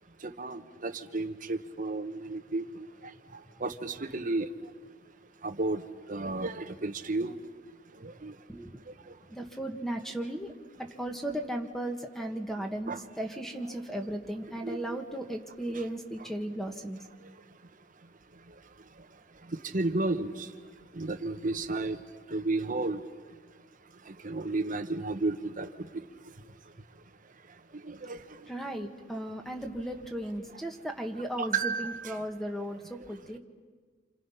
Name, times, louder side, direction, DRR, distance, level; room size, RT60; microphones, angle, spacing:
voice 1, 0.2-2.8 3.6-4.5 5.4-5.8 6.1-7.3 8.0-8.3 12.9-13.0 14.6-15.0 19.5-20.5 20.9-22.0 22.3-23.0 24.1-25.7 27.8-28.2 31.4-32.1, right 3 dB, 45° right, 8 dB, 1.2 m, -32 dB
voice 2, 9.3-10.5 10.8-17.0 28.5-32.8 33.1-33.4, right 1 dB, ahead, 3 dB, 1.6 m, -36 dB
28.0 x 28.0 x 5.8 m, 1.5 s
head